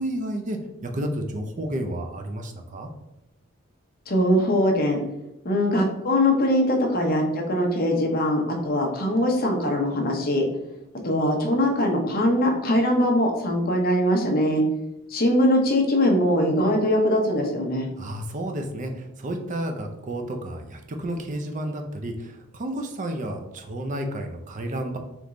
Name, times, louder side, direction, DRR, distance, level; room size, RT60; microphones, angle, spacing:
voice 1, 0.0-2.9 18.0-25.0, right 1 dB, 35° right, 4 dB, 0.5 m, -31 dB
voice 2, 4.1-5.0 5.4-10.4 11.0-14.6 15.1-17.9, left 1 dB, 45° left, 1 dB, 0.8 m, -22 dB
3.5 x 3.1 x 3.7 m, 0.91 s
head